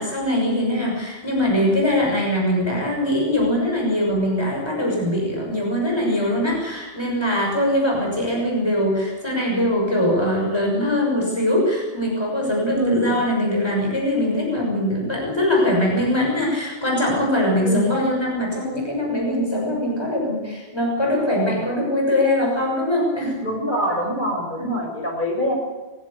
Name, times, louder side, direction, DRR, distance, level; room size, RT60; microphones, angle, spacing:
voice 1, 0.0-23.5 24.5-24.8, left 1 dB, 25° left, -1 dB, 6.4 m, -22 dB
voice 2, 12.8-13.2 17.6-18.0 23.4-25.5, equal, 45° left, 0 dB, 6.8 m, -24 dB
21.5 x 16.5 x 8.4 m, 1.3 s
omnidirectional pair, 1.1 m